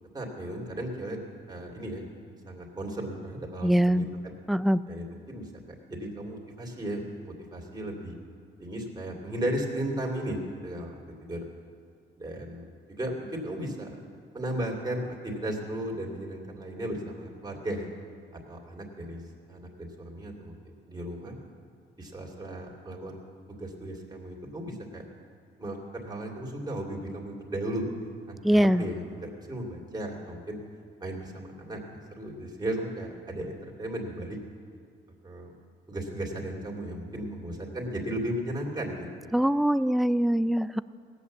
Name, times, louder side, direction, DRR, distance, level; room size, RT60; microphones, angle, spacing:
voice 1, 0.1-1.2 1.5-2.1 2.5-4.3 4.9-5.5 5.9-8.1 8.6-10.9 11.2-11.5 12.2-14.0 14.3-17.9 18.3-19.2 19.5-20.5 20.9-21.4 22.0-23.2 23.5-25.0 25.6-27.9 28.3-30.6 31.0-34.4 35.2-35.5 35.9-39.3, right 1 dB, 20° right, -2 dB, 2.7 m, -35 dB
voice 2, 3.6-4.0 4.5-4.8 28.4-28.8 39.3-40.8, equal, ahead, 15 dB, 0.3 m, -23 dB
17.0 x 8.2 x 7.2 m, 2.2 s
cardioid pair, 90°, 20 cm